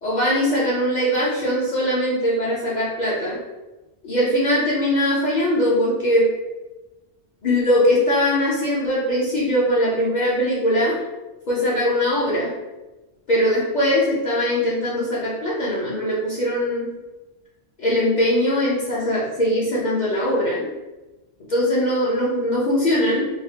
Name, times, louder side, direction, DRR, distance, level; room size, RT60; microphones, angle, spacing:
voice 1, 0.0-3.4 4.0-6.3 7.4-10.9 11.5-12.5 13.3-16.9 17.8-20.7 21.5-23.3, equal, 50° left, -7 dB, 0.6 m, -21 dB
3.2 x 2.0 x 2.7 m, 1.1 s
omnidirectional pair, 1.2 m